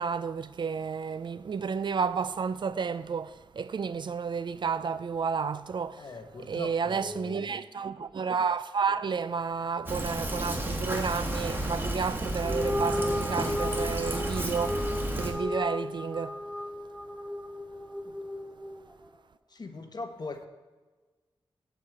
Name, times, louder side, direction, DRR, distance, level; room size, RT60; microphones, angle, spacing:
voice 1, 0.0-6.0 6.5-14.8 15.2-16.4, right 5 dB, 55° right, 0.4 m, -31 dB
voice 2, 6.0-7.5 18.0-18.1 19.5-20.5, left 3 dB, 45° left, 0.9 m, -40 dB
Fill (with liquid), 9.9-15.3, right 1 dB, 25° right, 1.4 m, -32 dB
sound 1, 12.4-18.9, left 1 dB, 5° right, 0.8 m, -34 dB
8.5 x 4.7 x 7.5 m
wide cardioid pair, 85°, 9 cm